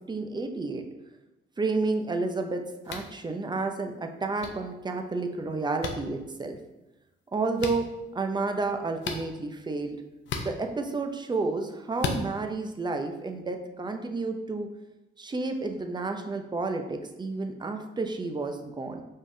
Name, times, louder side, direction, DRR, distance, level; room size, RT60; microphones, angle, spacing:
voice 1, 0.1-0.8 1.6-6.6 7.3-7.9 8.1-10.0 10.4-14.7 15.2-19.0, right 3 dB, 20° right, 5 dB, 0.5 m, -31 dB
sound 1, 2.8-3.1 4.4-4.5 5.8-5.9 7.6-7.8 9.0-9.2 10.2-10.5 12.0-12.2, left 5 dB, 65° left, 0.6 m, -32 dB
5.3 x 3.5 x 2.6 m, 0.98 s
cardioid pair, 90°, 20 cm